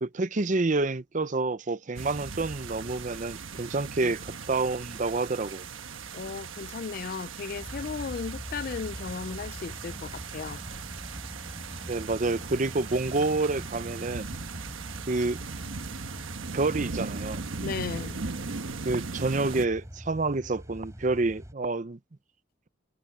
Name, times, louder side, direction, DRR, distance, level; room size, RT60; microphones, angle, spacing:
voice 1, 0.0-5.7 11.9-14.3 15.1-15.6 16.5-17.4 18.8-22.0, right 3 dB, 40° right, 0.6 m, -28 dB
sound 1, 2.0-19.7, right 4 dB, 90° right, 1.2 m, -39 dB
voice 2, 6.1-10.6 17.6-18.2, left 5 dB, 45° left, 0.4 m, -35 dB
sound 2, 7.6-21.5, equal, 15° right, 3.7 m, -43 dB
head